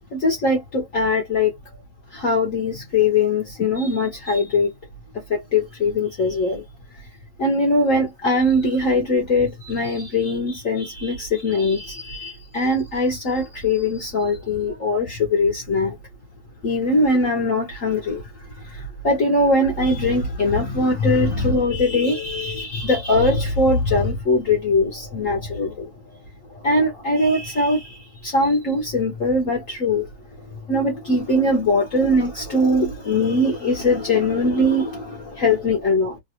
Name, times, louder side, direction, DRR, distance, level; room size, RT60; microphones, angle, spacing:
voice 1, 0.1-1.5 2.1-4.7 5.3-6.6 7.4-16.0 16.6-25.9 26.6-30.1 30.7-36.2, left 2 dB, 50° left, 1.1 m, -21 dB
3.3 x 2.3 x 2.8 m
omnidirectional pair, 2.1 m